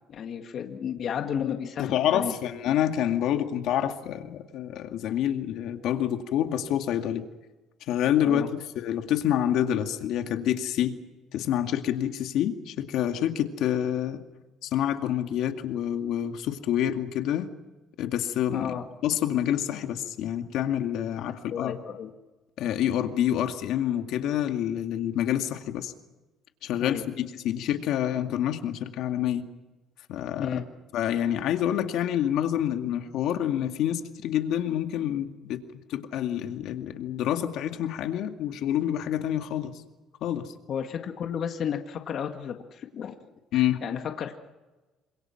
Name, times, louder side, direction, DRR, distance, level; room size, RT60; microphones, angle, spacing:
voice 1, 0.1-2.4 8.2-8.5 18.5-18.8 21.5-22.1 26.8-27.0 30.4-30.6 40.7-43.2 43.5-44.3, left 8 dB, 50° left, 5 dB, 1.9 m, -32 dB
voice 2, 1.8-7.2 7.9-8.4 8.8-11.0 11.3-14.2 14.6-17.5 18.0-18.7 19.0-21.7 22.6-25.9 26.6-29.5 30.1-30.6 30.9-35.6 35.9-39.7 40.2-40.5 43.5-43.8, left 10 dB, 70° left, 6 dB, 2.2 m, -27 dB
27.5 x 26.0 x 5.9 m, 1.1 s
cardioid pair, 140°, 0 cm